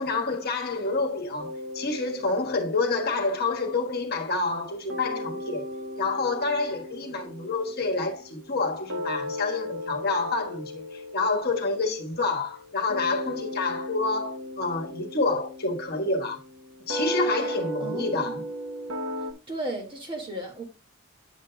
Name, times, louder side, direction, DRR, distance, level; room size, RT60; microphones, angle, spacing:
voice 1, 0.0-5.6 6.0-16.4 16.9-18.4, left 3 dB, 50° left, 1.4 m, -28 dB
sound 1, 1.4-4.6 4.9-19.3, equal, 70° right, 1.2 m, -36 dB
voice 2, 17.8-18.4 19.5-20.6, right 1 dB, 25° right, 1.9 m, -35 dB
9.0 x 7.4 x 2.2 m
head